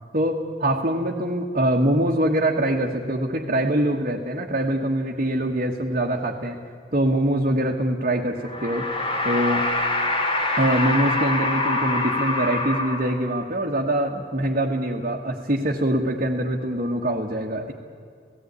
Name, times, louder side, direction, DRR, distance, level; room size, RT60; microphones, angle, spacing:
voice 1, 0.1-6.6 6.9-8.9 9.2-9.7 10.6-17.7, right 1 dB, 45° right, -2 dB, 1.5 m, -24 dB
sound 1, 8.4-13.5, left 2 dB, 30° left, 2.2 m, -25 dB
17.0 x 16.5 x 9.6 m, 2.2 s
head